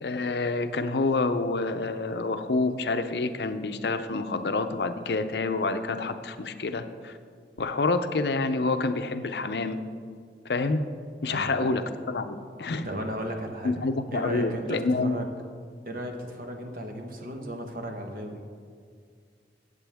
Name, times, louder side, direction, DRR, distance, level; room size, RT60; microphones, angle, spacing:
voice 1, 0.0-7.2 7.6-9.8 10.4-10.9 11.2-12.9 13.6-15.2, left 3 dB, 70° left, 9 dB, 0.6 m, -28 dB
voice 2, 11.3-11.7 12.8-13.8 14.1-15.2 15.8-18.6, right 1 dB, 50° right, 3 dB, 1.2 m, -35 dB
15.0 x 8.3 x 3.5 m, 2.1 s
head